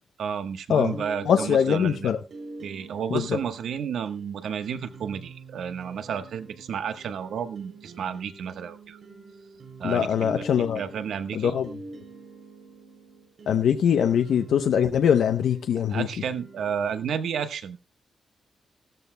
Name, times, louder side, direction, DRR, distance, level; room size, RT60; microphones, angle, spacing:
voice 1, 0.2-2.1 2.6-9.0 9.8-10.4 10.7-11.6 15.9-17.8, right 7 dB, 85° right, 9 dB, 1.1 m, -32 dB
voice 2, 0.7-2.2 3.1-3.4 9.8-10.8 11.3-11.8 13.5-16.1, left 8 dB, 90° left, 7 dB, 0.7 m, -22 dB
sound 1, 0.9-17.0, right 3 dB, 55° right, 3.3 m, -45 dB
17.0 x 13.5 x 2.2 m, 0.25 s
wide cardioid pair, 155°, 0 cm